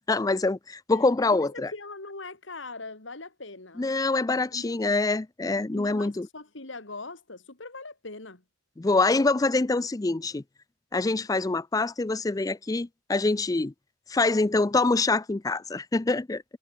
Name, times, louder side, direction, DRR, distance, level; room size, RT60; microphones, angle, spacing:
voice 1, 0.1-1.7 3.8-6.3 8.8-10.4 10.9-13.7 14.1-16.4, left 3 dB, 20° left, 0.4 m, -25 dB
voice 2, 0.9-3.8 4.5-4.9 5.7-8.4, left 3 dB, 75° left, 3.0 m, -41 dB
head